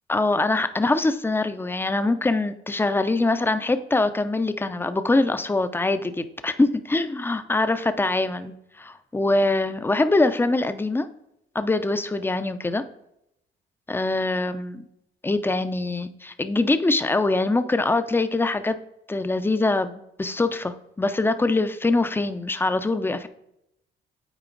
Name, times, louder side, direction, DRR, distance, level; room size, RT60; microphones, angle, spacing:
voice 1, 0.1-11.1 11.5-12.8 13.9-14.8 15.2-18.8 19.1-23.3, left 2 dB, 10° left, 10 dB, 0.5 m, -23 dB
9.1 x 4.4 x 3.9 m, 0.79 s
cardioid pair, 90°, 20 cm